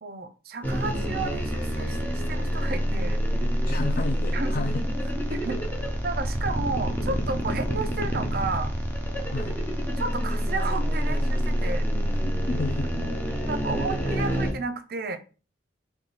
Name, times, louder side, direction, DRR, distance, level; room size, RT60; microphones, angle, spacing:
voice 1, 0.0-3.2 4.3-4.5 5.3-5.6 6.0-8.7 10.0-11.9 13.5-15.2, right 3 dB, 55° right, 9 dB, 0.6 m, -32 dB
sound 1, 0.6-14.5, equal, 10° left, 0.8 m, -27 dB
voice 2, 3.7-4.9 9.3-9.6 12.1-12.9, left 3 dB, 50° left, 8 dB, 0.4 m, -32 dB
3.6 x 3.1 x 4.0 m, 0.35 s
head